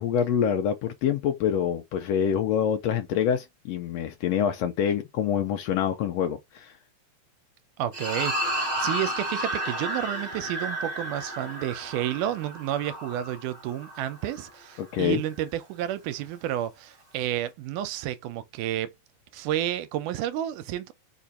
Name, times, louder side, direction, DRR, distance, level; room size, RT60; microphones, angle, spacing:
voice 1, 0.0-6.7 14.8-15.2, left 8 dB, 75° left, 1.5 m, -26 dB
voice 2, 7.8-18.9 19.3-20.9, right 12 dB, 85° right, 2.1 m, -31 dB
sound 1, 7.9-14.5, right 1 dB, 50° right, 0.8 m, -32 dB
5.0 x 2.4 x 4.1 m
omnidirectional pair, 3.7 m